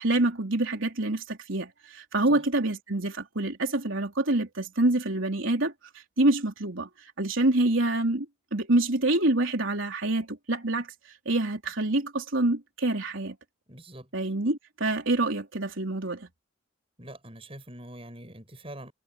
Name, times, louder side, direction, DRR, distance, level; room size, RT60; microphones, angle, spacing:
voice 1, 0.0-8.3 8.5-13.4 14.1-16.3, right 2 dB, 80° right, 3.5 m, -26 dB
voice 2, 13.7-14.1 17.0-18.9, right 1 dB, 30° right, 7.6 m, -44 dB
head